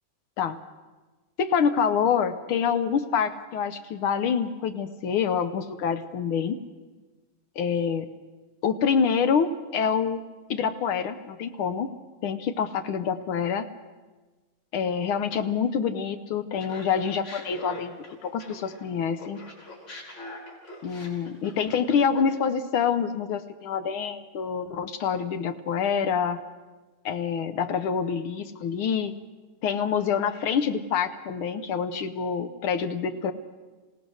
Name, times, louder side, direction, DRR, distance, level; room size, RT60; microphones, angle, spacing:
voice 1, 1.4-6.6 7.6-8.1 8.6-10.2 10.5-11.9 12.2-13.6 14.7-17.9 18.2-19.4 20.8-26.4 27.0-29.1 29.6-33.3, left 7 dB, 80° left, 9 dB, 1.7 m, -26 dB
Laughter, 16.6-18.9 19.2-22.4, left 2 dB, 55° left, 5.0 m, -43 dB
26.5 x 17.0 x 6.3 m, 1.3 s
omnidirectional pair, 2.3 m